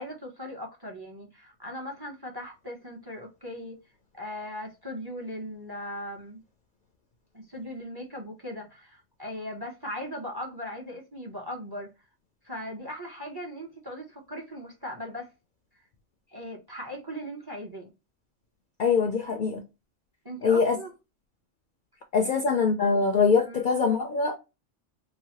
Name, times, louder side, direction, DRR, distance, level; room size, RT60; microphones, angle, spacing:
voice 1, 0.0-3.8 4.1-6.4 7.3-11.9 12.4-15.3 16.3-17.9 20.2-20.9 22.2-22.4 23.5-23.6, equal, 25° right, 0.6 m, -38 dB
voice 2, 18.8-19.6 20.4-20.8 22.1-24.3, left 5 dB, 60° left, 0.5 m, -23 dB
3.1 x 2.2 x 2.7 m
omnidirectional pair, 1.2 m